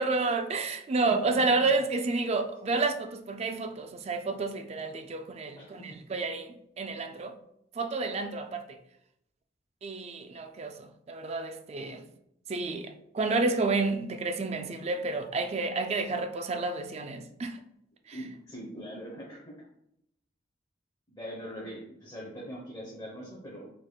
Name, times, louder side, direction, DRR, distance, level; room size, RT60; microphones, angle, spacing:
voice 1, 0.0-7.4 7.8-8.6 9.8-12.0 12.5-17.6 18.1-18.2, right 3 dB, 35° right, 0.4 m, -30 dB
voice 2, 1.0-1.4 5.6-5.7 18.1-19.5 21.1-23.7, equal, 20° left, 0.9 m, -42 dB
4.7 x 3.7 x 2.3 m
head